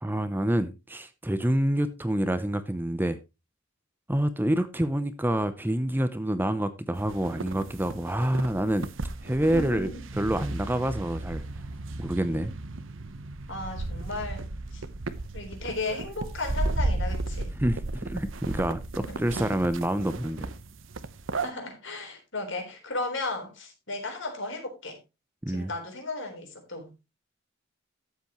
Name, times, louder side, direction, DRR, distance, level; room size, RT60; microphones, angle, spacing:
voice 1, 0.0-3.2 4.1-8.9 9.2-9.9 10.2-11.4 12.0-12.5 17.6-20.5 25.4-25.7, right 1 dB, 10° right, 0.6 m, -27 dB
sound 1, 6.9-21.5, right 2 dB, 70° right, 0.9 m, -34 dB
voice 2, 9.4-10.0 13.5-14.4 14.7-14.8 15.3-17.5 18.9-19.2 21.3-25.0 25.5-26.9, left 2 dB, 65° left, 3.9 m, -35 dB
13.0 x 8.1 x 3.0 m
head